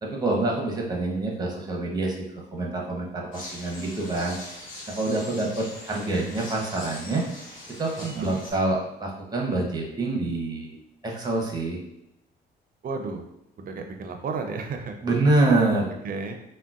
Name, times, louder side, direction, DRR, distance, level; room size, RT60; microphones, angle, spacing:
voice 1, 0.0-2.3 2.5-4.4 4.9-7.3 7.8-10.7 11.0-11.8 15.0-15.9, right 2 dB, 20° right, -1 dB, 0.8 m, -26 dB
sound 1, 3.3-8.5, left 1 dB, 75° left, 1.0 m, -42 dB
voice 2, 8.0-8.4 12.8-13.3 13.6-15.0 16.0-16.4, right 4 dB, 45° right, 5 dB, 0.5 m, -33 dB
3.7 x 2.1 x 2.4 m, 0.84 s
cardioid pair, 90°, 20 cm